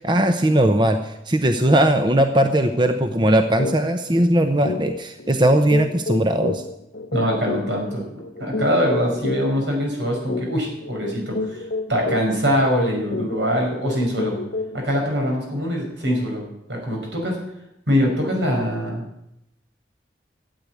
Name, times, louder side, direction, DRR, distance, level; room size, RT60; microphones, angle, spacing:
voice 1, 0.0-6.6, right 1 dB, 25° right, 7 dB, 0.8 m, -19 dB
sound 1, 3.6-3.8 4.1-4.3 4.6-14.9, left 2 dB, 70° left, 1.2 m, -30 dB
voice 2, 7.1-8.0 8.4-11.6 11.9-14.4 14.7-16.4 16.7-17.4 17.9-19.0, equal, 80° right, 0 dB, 5.7 m, -23 dB
12.5 x 8.4 x 9.5 m, 0.84 s
head